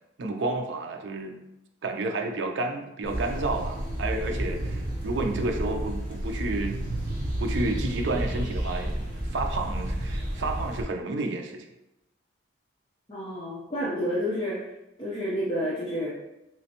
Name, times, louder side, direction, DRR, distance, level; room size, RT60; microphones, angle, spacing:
voice 1, 0.2-1.4 1.8-6.8 7.4-11.7, right 2 dB, 65° right, 3 dB, 0.4 m, -31 dB
sound 1, 3.0-10.8, right 1 dB, 45° right, 0.8 m, -31 dB
voice 2, 13.1-14.6 15.0-16.1, equal, 25° left, -8 dB, 0.6 m, -29 dB
3.3 x 3.0 x 2.9 m, 0.90 s
head